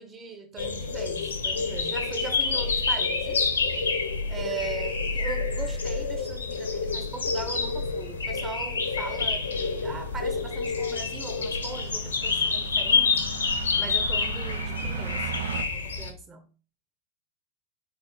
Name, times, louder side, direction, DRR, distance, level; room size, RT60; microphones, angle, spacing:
voice 1, 0.0-3.5 4.3-13.1 13.8-15.3 15.7-16.5, right 4 dB, 25° right, 1.2 m, -39 dB
sound 1, 0.6-16.1, left 4 dB, 75° left, 1.1 m, -28 dB
sound 2, 2.9-3.3 4.2-4.3 4.5-4.6 4.8-4.9 5.3-5.6 6.0-6.2 6.5-15.6, right 9 dB, 60° right, 0.6 m, -40 dB
4.7 x 4.1 x 5.5 m
figure-of-eight pair, 90°, 0 cm